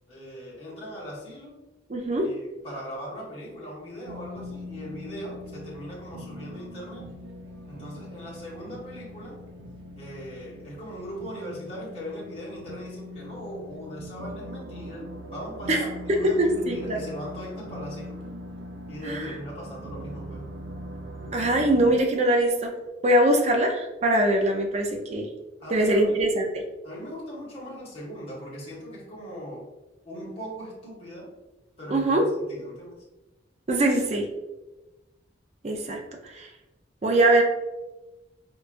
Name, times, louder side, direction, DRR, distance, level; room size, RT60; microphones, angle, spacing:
voice 1, 0.1-1.6 2.2-2.4 2.6-7.0 7.7-9.4 10.0-15.9 16.1-18.2 18.9-20.4 25.6-26.3 26.8-29.7 30.0-31.3 31.8-33.0, equal, 30° left, -6 dB, 1.0 m, -39 dB
voice 2, 1.9-2.2 15.7-15.8 16.4-17.0 19.1-19.3 21.3-22.7 23.0-25.3 25.7-26.4 31.9-32.2 33.7-34.3 35.6-36.0 36.2-36.5 37.0-37.4, right 1 dB, 35° right, 2 dB, 0.5 m, -22 dB
sound 1, 4.1-21.9, left 1 dB, 90° right, 0.5 m, -41 dB
4.6 x 2.3 x 2.5 m, 1.1 s
head